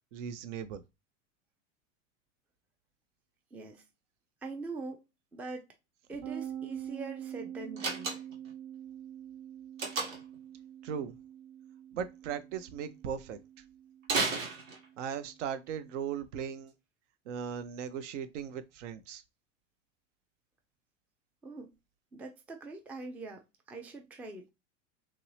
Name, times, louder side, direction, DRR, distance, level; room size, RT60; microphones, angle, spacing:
voice 1, 0.1-0.8 10.8-11.2 11.9-13.4 15.0-16.7 17.3-19.2, right 8 dB, 70° right, 0.6 m, -38 dB
voice 2, 3.5-3.8 4.4-5.0 5.3-5.7 6.1-8.1 21.4-21.7 22.1-24.4, right 3 dB, 5° right, 0.3 m, -43 dB
sound 1, 6.2-15.7, right 10 dB, 40° right, 1.1 m, -45 dB
Slam, 7.8-8.5 9.8-10.4 14.0-15.1, right 3 dB, 85° right, 1.4 m, -33 dB
3.0 x 2.6 x 3.0 m
hypercardioid pair, 100°, 39 cm